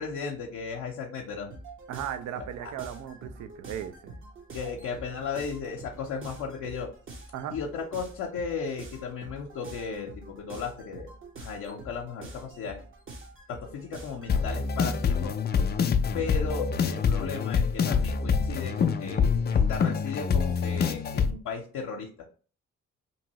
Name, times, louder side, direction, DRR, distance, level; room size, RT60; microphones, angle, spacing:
voice 1, 0.0-1.5 2.6-2.7 4.5-6.9 7.5-11.1 11.4-12.8 13.5-15.4 16.1-19.3 19.5-22.3, left 5 dB, 65° left, -1 dB, 0.6 m, -35 dB
sound 1, 1.5-15.2, right 2 dB, 35° right, 0.9 m, -46 dB
voice 2, 1.9-4.1 7.3-7.6, right 10 dB, 55° right, 9 dB, 0.4 m, -36 dB
sound 2, 14.3-21.3, left 6 dB, 30° left, 0.4 m, -26 dB
2.8 x 2.6 x 2.9 m, 0.39 s
hypercardioid pair, 50°, 34 cm